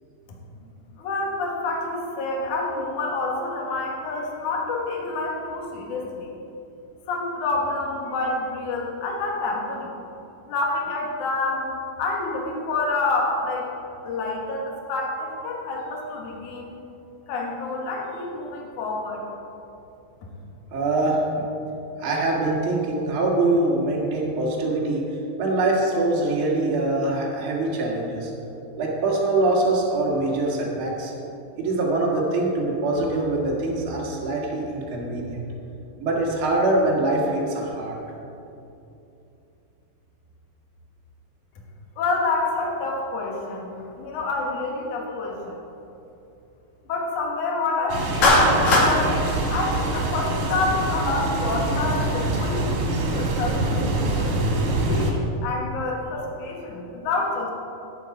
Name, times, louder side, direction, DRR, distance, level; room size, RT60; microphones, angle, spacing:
voice 1, 0.9-6.3 7.1-9.9 10.5-11.7 12.0-13.7 14.0-16.7 17.3-19.2 42.0-45.6 46.9-54.3 54.9-57.5, left 3 dB, 70° left, -1 dB, 1.9 m, -28 dB
voice 2, 20.7-21.4 22.0-25.1 25.4-28.3 28.8-31.1 31.6-35.4 36.0-38.0, right 2 dB, 80° right, -3 dB, 1.1 m, -23 dB
sound 1, 47.9-55.1, right 2 dB, 60° right, 2.3 m, -25 dB
Clapping, 48.2-48.9, left 2 dB, 50° left, 2.3 m, -16 dB
14.0 x 8.9 x 4.8 m, 2.8 s
omnidirectional pair, 5.9 m